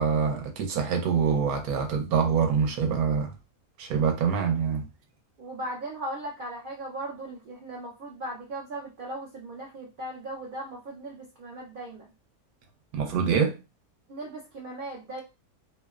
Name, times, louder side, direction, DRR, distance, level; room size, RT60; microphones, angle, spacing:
voice 1, 0.0-3.3 3.8-4.8 12.9-13.6, right 6 dB, 85° right, 1.1 m, -25 dB
voice 2, 5.4-12.1 14.1-15.2, right 1 dB, 60° right, 0.5 m, -38 dB
2.8 x 2.1 x 2.3 m
omnidirectional pair, 1.5 m